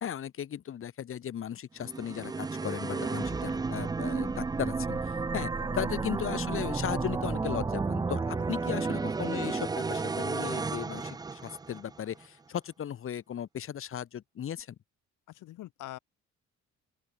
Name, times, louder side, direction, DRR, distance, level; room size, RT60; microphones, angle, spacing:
voice 1, 0.0-14.7, left 9 dB, 45° left, 0.8 m, -36 dB
sound 1, 1.8-12.0, right 4 dB, 15° right, 0.4 m, -32 dB
voice 2, 2.8-3.4 5.6-5.8 15.3-16.0, left 15 dB, 85° left, 2.2 m, -45 dB
open air
cardioid pair, 90°, 30 cm